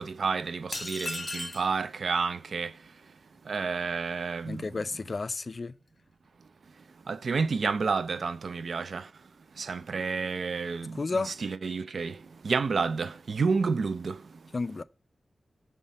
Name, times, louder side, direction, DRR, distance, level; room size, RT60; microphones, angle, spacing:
voice 1, 0.0-2.7 3.5-4.7 7.1-9.1 9.6-12.2 12.4-14.2, right 4 dB, 75° right, 0.4 m, -30 dB
sound 1, 0.7-1.7, left 2 dB, 30° left, 0.8 m, -35 dB
voice 2, 4.4-5.7 10.9-11.3 14.5-14.8, left 3 dB, 50° left, 0.3 m, -32 dB
5.6 x 3.6 x 5.2 m
wide cardioid pair, 75°, 0 cm